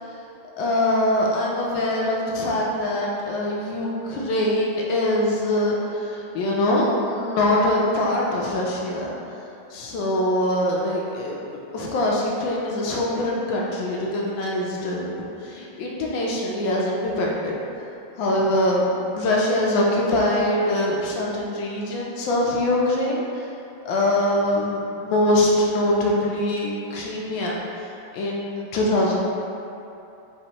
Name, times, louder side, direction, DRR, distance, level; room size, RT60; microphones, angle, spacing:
voice 1, 0.6-9.1 9.7-17.5 18.2-18.9 19.1-23.4 23.8-29.2, left 1 dB, 75° left, -3 dB, 1.2 m, -23 dB
4.3 x 3.4 x 2.8 m, 2.8 s
omnidirectional pair, 2.3 m